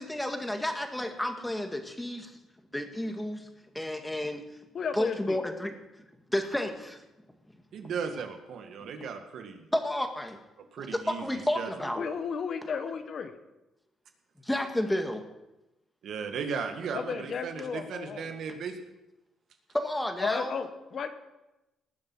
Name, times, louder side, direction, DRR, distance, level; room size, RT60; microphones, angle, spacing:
voice 1, 0.0-2.3 2.7-3.5 3.7-4.4 4.9-5.7 6.3-7.0 8.8-8.9 9.7-10.4 11.1-12.1 12.7-12.8 14.4-15.2 19.7-20.5, left 1 dB, 10° left, 6 dB, 1.9 m, -31 dB
voice 2, 4.7-5.4 12.0-13.3 16.9-18.3 20.2-21.1, left 6 dB, 55° left, 9 dB, 1.4 m, -34 dB
voice 3, 7.7-9.7 10.6-11.9 16.0-18.8, right 6 dB, 70° right, 6 dB, 1.8 m, -36 dB
19.0 x 7.3 x 6.2 m, 0.99 s
cardioid pair, 90°, 0 cm